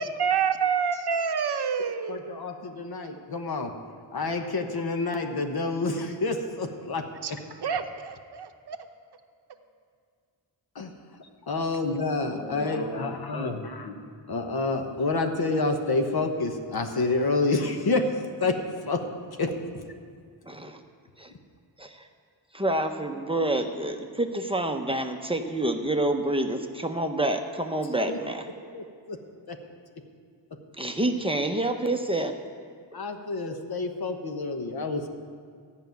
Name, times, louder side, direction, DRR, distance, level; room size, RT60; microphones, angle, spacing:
voice 1, 0.0-2.4 7.2-7.3 7.6-8.8, right 6 dB, 60° right, 7 dB, 0.8 m, -28 dB
voice 2, 2.1-3.7 4.1-7.4 10.7-10.9 11.5-14.0 14.3-18.1 18.4-18.6 18.8-19.0 19.4-19.8 28.1-28.2 28.6-29.2 29.5-29.6 32.9-35.1, left 3 dB, 55° left, 5 dB, 1.1 m, -28 dB
voice 3, 12.3-13.6 20.5-20.8 21.2-21.3 21.8-22.0 22.5-28.5 30.8-32.3, right 1 dB, 10° right, 4 dB, 0.7 m, -28 dB
14.5 x 5.6 x 9.2 m, 2.2 s
wide cardioid pair, 155°, 46 cm